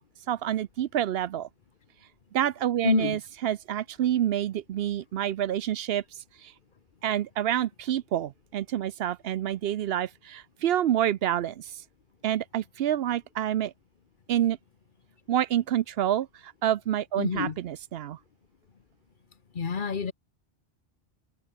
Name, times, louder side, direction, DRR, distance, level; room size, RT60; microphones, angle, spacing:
voice 1, 0.3-1.5 2.3-6.0 6.4-6.5 7.0-11.7 12.2-13.7 14.3-14.6 15.3-18.2, right 11 dB, 70° right, 0.8 m, -28 dB
voice 2, 2.8-3.2 17.2-17.6 19.5-20.1, left 6 dB, 50° left, 1.2 m, -27 dB
omnidirectional pair, 1.1 m